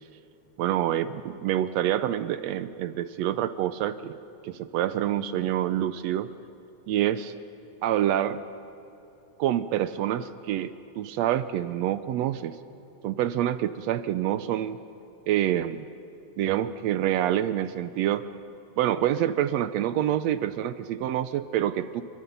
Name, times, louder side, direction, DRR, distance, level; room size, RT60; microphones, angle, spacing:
voice 1, 0.6-4.2 4.4-6.3 6.9-7.3 7.8-8.4 9.4-12.6 13.0-14.8 15.3-15.9 16.4-18.2 18.8-22.0, right 11 dB, 75° right, 13 dB, 1.6 m, -27 dB
27.0 x 24.5 x 5.4 m, 3.0 s
omnidirectional pair, 3.5 m